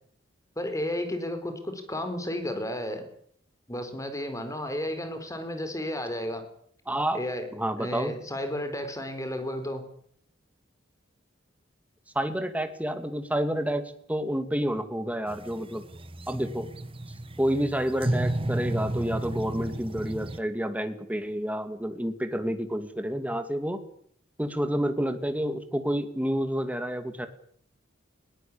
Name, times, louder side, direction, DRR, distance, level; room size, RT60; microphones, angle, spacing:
voice 1, 0.6-3.1 3.7-6.5 7.1-7.5 7.8-9.8, left 1 dB, 15° left, 8 dB, 4.5 m, -32 dB
voice 2, 6.9-7.2 7.5-8.1 12.1-15.8 16.3-16.7 17.4-23.8 24.4-27.3, equal, 10° right, 9 dB, 2.4 m, -29 dB
sound 1, 15.3-20.4, right 1 dB, 30° right, 1.5 m, -32 dB
21.5 x 18.0 x 8.7 m, 0.62 s
head